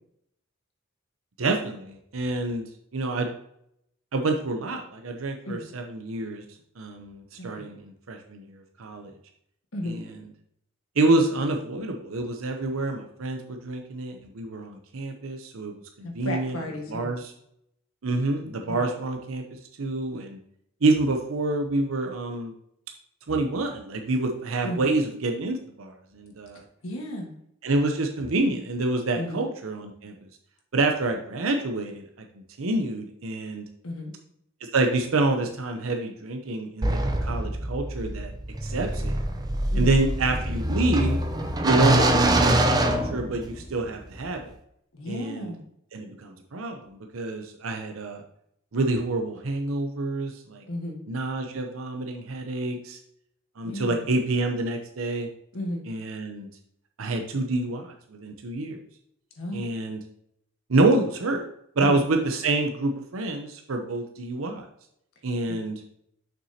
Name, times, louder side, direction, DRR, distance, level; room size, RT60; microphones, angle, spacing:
voice 1, 1.4-2.6 2.9-3.3 4.1-6.4 6.8-9.1 9.9-10.0 11.0-16.6 16.9-17.3 18.0-19.4 19.8-20.4 20.8-22.5 23.3-26.6 27.6-30.1 30.7-32.0 32.6-33.6 34.7-38.3 38.6-39.2 39.7-41.2 41.6-44.4 45.1-45.5 45.9-48.2 48.7-50.6 51.1-53.0 53.6-55.3 55.9-56.5 57.0-58.8 59.5-60.0 60.7-61.4 61.8-64.6 65.2-65.8, right 2 dB, 90° right, 4 dB, 0.7 m, -27 dB
voice 2, 7.4-7.7 9.7-10.0 16.0-17.1 18.7-18.9 24.6-24.9 26.8-27.3 29.1-29.4 33.8-34.1 39.7-40.0 44.9-45.6 50.7-51.0 53.6-54.0 55.5-55.8 59.3-59.6 61.8-62.0 65.5-65.6, left 1 dB, 90° left, 2 dB, 1.6 m, -34 dB
sound 1, 36.8-43.7, right 1 dB, 20° right, 0.6 m, -24 dB
6.8 x 6.1 x 2.8 m, 0.74 s
head